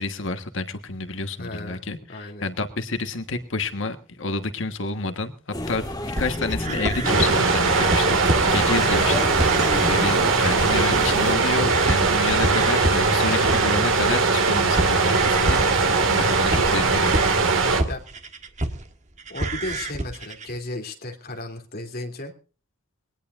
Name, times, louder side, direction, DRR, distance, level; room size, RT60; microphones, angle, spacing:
voice 1, 0.0-5.3 5.7-5.9 6.2-15.7 16.0-17.1, left 3 dB, 70° left, 8 dB, 1.4 m, -29 dB
voice 2, 1.4-1.8 2.1-2.5 17.9-18.0 19.3-22.3, left 2 dB, 50° left, 3 dB, 2.9 m, -34 dB
sound 1, 5.5-11.4, left 1 dB, 20° left, 2.0 m, -30 dB
sound 2, 6.1-10.1 10.4-11.4 11.7-18.9 19.2-20.6, right 2 dB, 35° right, 1.5 m, -29 dB
sound 3, 7.0-17.8, right 4 dB, 75° right, 2.1 m, -20 dB
21.5 x 18.0 x 2.5 m, 0.37 s
head